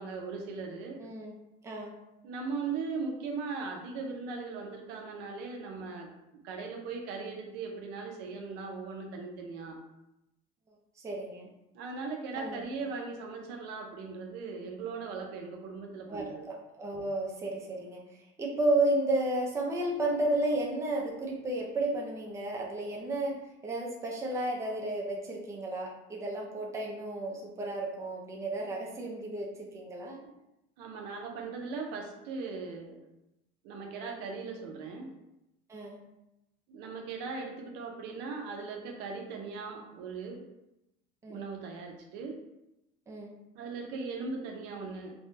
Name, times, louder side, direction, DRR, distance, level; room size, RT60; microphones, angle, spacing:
voice 1, 0.0-1.0 2.2-6.1 6.4-9.8 11.7-16.5 30.8-33.0 33.6-35.1 36.7-40.4 41.3-42.3 43.5-45.1, right 4 dB, 70° right, 2 dB, 0.6 m, -39 dB
voice 2, 1.0-1.3 1.6-1.9 11.0-11.5 12.3-12.6 16.1-18.0 18.4-23.4 23.6-30.3 35.7-36.0 41.2-41.4 43.1-43.3, right 2 dB, 15° right, -2 dB, 0.5 m, -32 dB
3.3 x 2.1 x 2.7 m, 0.90 s
cardioid pair, 135°, 18 cm